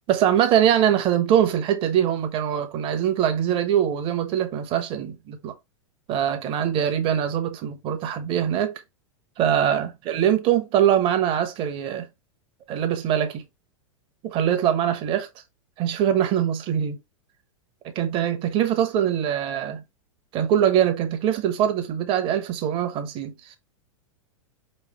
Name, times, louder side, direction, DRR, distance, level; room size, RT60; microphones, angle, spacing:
voice 1, 0.1-5.5 6.1-8.8 9.4-12.1 12.7-13.4 14.2-15.3 15.8-17.0 17.9-19.8 20.3-23.6, right 10 dB, 30° right, 0.9 m, -23 dB
5.1 x 3.2 x 3.0 m
figure-of-eight pair, 95°, 17 cm